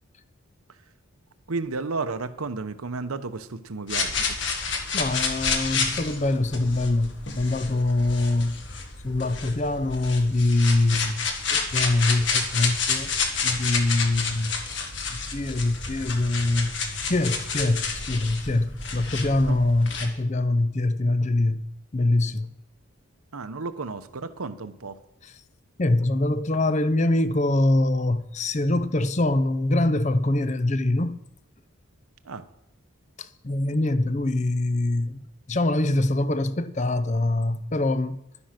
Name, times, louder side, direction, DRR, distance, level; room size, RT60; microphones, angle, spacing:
voice 1, 1.5-4.4 19.5-19.6 23.3-25.0 32.3-32.4, right 3 dB, 85° right, 0.9 m, -32 dB
sound 1, 3.9-20.1, left 5 dB, 55° left, 1.7 m, -29 dB
voice 2, 4.9-8.6 9.0-11.2 11.5-13.1 13.4-14.5 15.3-16.7 17.1-21.6 21.9-22.5 25.2-25.4 25.8-31.2 33.2-35.2 35.5-38.2, left 2 dB, 35° left, 0.6 m, -24 dB
12.0 x 9.8 x 5.9 m
head